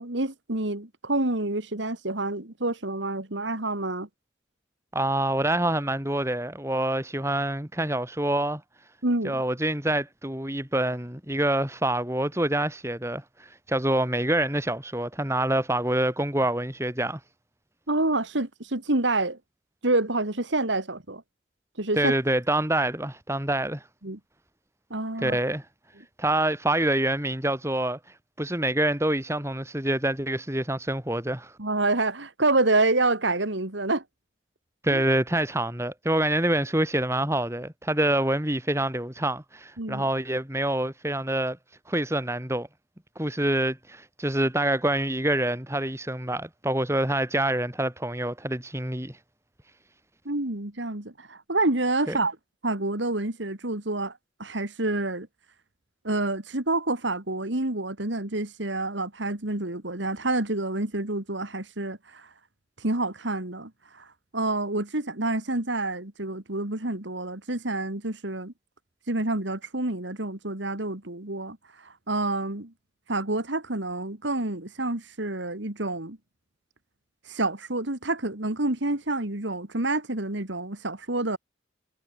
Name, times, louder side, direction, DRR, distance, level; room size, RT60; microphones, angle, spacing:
voice 1, 0.0-4.1 9.0-9.4 17.9-19.4 19.8-21.2 21.8-22.1 24.0-24.2 24.9-25.4 31.6-34.0 34.9-35.0 39.8-40.1 50.2-52.4 52.6-55.3 56.0-62.3 62.8-64.1 64.3-68.5 69.1-72.7 73.1-76.2 77.3-81.4, right 2 dB, 75° right, 2.8 m, -28 dB
voice 2, 4.9-8.6 9.2-17.2 22.0-23.8 25.2-25.6 26.2-28.0 28.4-31.5 34.8-41.6 41.9-42.7 43.1-49.1 52.1-52.2, right 1 dB, 15° right, 3.3 m, -26 dB
head